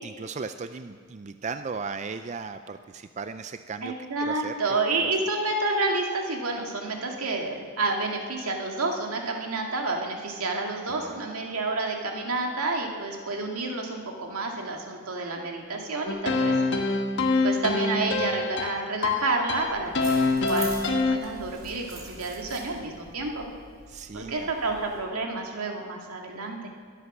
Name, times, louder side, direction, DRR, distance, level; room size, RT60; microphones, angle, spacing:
voice 1, 0.0-3.9 4.2-4.5 5.0-5.1 10.9-11.2 23.9-24.5, right 4 dB, 30° right, 9 dB, 0.4 m, -36 dB
voice 2, 3.8-16.6 17.4-23.4 24.1-26.7, right 3 dB, 90° right, 1 dB, 2.2 m, -29 dB
sound 1, 16.1-21.2, left 3 dB, 55° left, 1.2 m, -25 dB
sound 2, 19.6-25.0, right 4 dB, 60° right, 4.1 m, -44 dB
22.0 x 8.3 x 6.1 m, 2.1 s
head